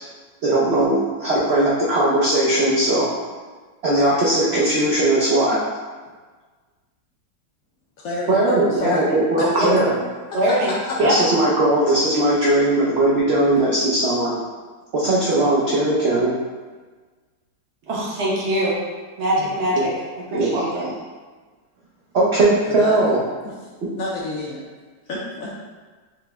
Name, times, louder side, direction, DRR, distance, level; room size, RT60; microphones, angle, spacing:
voice 1, 0.4-3.1 3.8-5.6 8.3-9.9 11.0-14.4 14.9-16.3 20.3-20.9 22.1-23.2, right 1 dB, 85° right, -6 dB, 0.5 m, -19 dB
voice 2, 8.0-9.0 9.4-9.6 10.5-10.6 10.9-11.0 19.4-19.6 22.7-23.0 23.4-23.5 24.0-24.6 25.1-25.7, left 2 dB, 70° left, -4 dB, 0.8 m, -29 dB
voice 3, 9.6-10.0 10.3-10.7 11.0-11.2 17.9-18.8 19.2-20.9, right 1 dB, 55° right, -5 dB, 0.8 m, -23 dB
4.9 x 2.1 x 3.4 m, 1.4 s
omnidirectional pair, 1.9 m